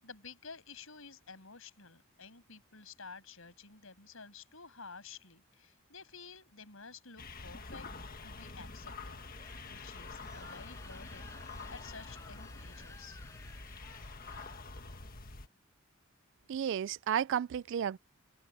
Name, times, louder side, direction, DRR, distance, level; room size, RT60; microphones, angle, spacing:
voice 1, 0.0-7.9 8.2-9.2 9.7-13.2, left 5 dB, 70° left, 7.1 m, -52 dB
sound 1, 7.2-15.5, left 3 dB, 45° left, 1.6 m, -47 dB
sound 2, 9.2-15.1, left 2 dB, 15° left, 7.4 m, -56 dB
voice 2, 16.5-18.0, right 8 dB, 60° right, 0.3 m, -32 dB
open air
head